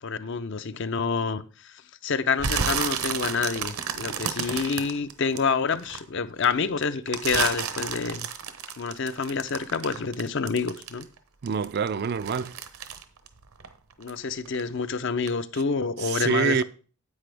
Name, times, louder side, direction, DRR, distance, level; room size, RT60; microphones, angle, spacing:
voice 1, 0.0-8.3 8.8-11.1 14.0-16.6, left 5 dB, 55° left, 0.5 m, -28 dB
sound 1, 2.4-6.0 6.4-11.2 11.5-14.2 14.5-14.8 15.3-15.4, right 7 dB, 75° right, 0.9 m, -31 dB
voice 2, 11.4-12.6 15.5-15.6 16.0-16.6, right 6 dB, 45° right, 0.3 m, -26 dB
9.8 x 8.4 x 3.4 m
head